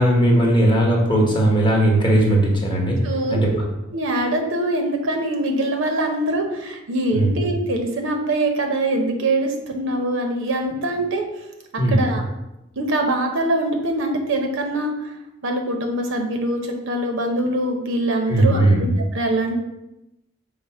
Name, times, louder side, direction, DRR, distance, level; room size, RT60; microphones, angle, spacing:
voice 1, 0.0-3.0 3.3-3.5 7.1-7.3 11.8-12.0 18.3-18.8, right 1 dB, 25° left, -1 dB, 0.8 m, -17 dB
voice 2, 3.0-3.4 3.9-11.2 11.9-12.2 12.8-14.9 15.4-19.6, right 1 dB, 65° right, 3 dB, 0.6 m, -23 dB
4.8 x 2.0 x 4.2 m, 0.90 s
head